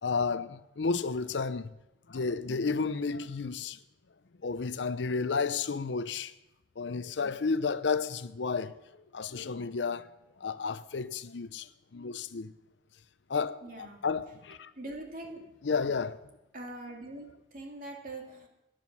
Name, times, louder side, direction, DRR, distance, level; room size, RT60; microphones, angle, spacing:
voice 1, 0.0-1.7 2.1-3.8 4.4-6.3 6.8-8.7 9.1-10.1 10.4-12.5 13.3-14.7 15.6-16.2, left 4 dB, 80° left, 0.6 m, -32 dB
voice 2, 13.6-14.0 14.8-15.4 16.5-18.5, right 2 dB, 50° right, 2.6 m, -43 dB
14.5 x 10.0 x 6.0 m
head